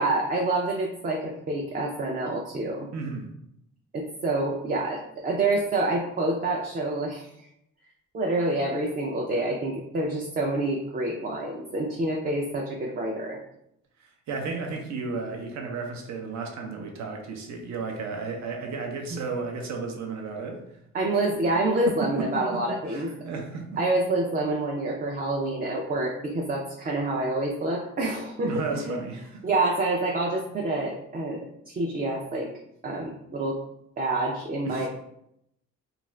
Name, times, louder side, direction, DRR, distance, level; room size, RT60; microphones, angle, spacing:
voice 1, 0.0-2.9 3.9-7.3 8.1-13.4 19.1-19.2 20.9-23.1 23.8-29.0 29.4-32.5 32.8-33.6 34.0-34.9, right 2 dB, 30° right, -1 dB, 0.5 m, -27 dB
voice 2, 2.9-3.3 14.0-20.6 21.1-21.2 21.9-22.6 22.9-23.8 28.4-29.4 34.7-34.9, right 4 dB, 65° right, 2 dB, 0.7 m, -33 dB
2.5 x 2.4 x 3.1 m, 0.77 s
cardioid pair, 90°, 30 cm